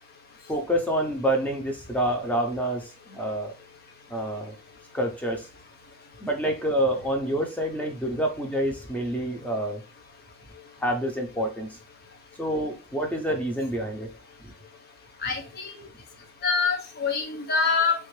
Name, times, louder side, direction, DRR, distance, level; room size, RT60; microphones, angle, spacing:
voice 1, 0.5-3.5 4.1-4.5 4.9-5.5 6.2-9.8 10.8-11.8 12.4-14.1 14.4-14.5, right 1 dB, 10° left, 2 dB, 0.7 m, -27 dB
voice 2, 15.2-15.7 16.4-17.9, left 5 dB, 50° left, 2 dB, 0.8 m, -25 dB
3.4 x 2.4 x 3.1 m, 0.32 s
head